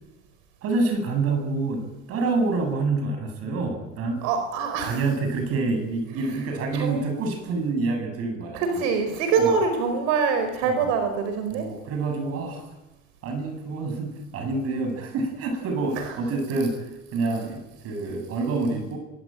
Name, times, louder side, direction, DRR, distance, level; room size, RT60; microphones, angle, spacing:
voice 1, 0.6-4.3 4.8-8.8 9.4-9.5 10.6-10.9 11.5-12.7 13.2-16.8 17.1-19.0, right 3 dB, 50° right, 6 dB, 8.0 m, -27 dB
voice 2, 4.2-5.1 6.7-7.1 8.5-11.7 16.0-16.1, right 5 dB, 85° right, 8 dB, 4.8 m, -24 dB
24.5 x 22.5 x 9.2 m, 1.0 s
cardioid pair, 160°, 30 cm